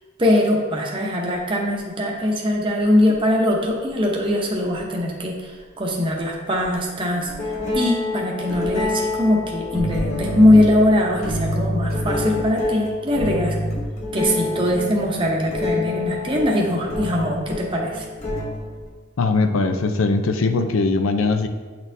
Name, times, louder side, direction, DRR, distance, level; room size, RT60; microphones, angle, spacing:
voice 1, 0.2-7.3 7.7-13.5 14.1-18.1, left 1 dB, 25° right, -1 dB, 0.7 m, -21 dB
sound 1, 3.1-3.2 4.7-4.8 6.6-6.7 7.3-18.9, left 2 dB, 35° left, 1.0 m, -27 dB
voice 2, 19.2-21.5, left 3 dB, 85° left, 8 dB, 0.5 m, -20 dB
8.5 x 4.2 x 2.7 m, 1.4 s
head